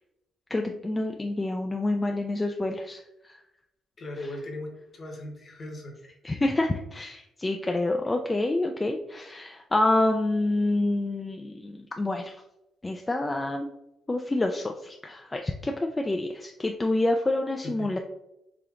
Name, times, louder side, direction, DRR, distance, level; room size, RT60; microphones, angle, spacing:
voice 1, 0.5-3.0 6.2-12.3 12.8-13.7 14.1-18.0, left 2 dB, 20° left, 3 dB, 0.3 m, -27 dB
voice 2, 4.0-4.7 4.9-5.9 17.6-17.9, left 1 dB, 40° left, 2 dB, 1.1 m, -38 dB
5.0 x 2.9 x 2.4 m, 0.88 s
cardioid pair, 90°, 0 cm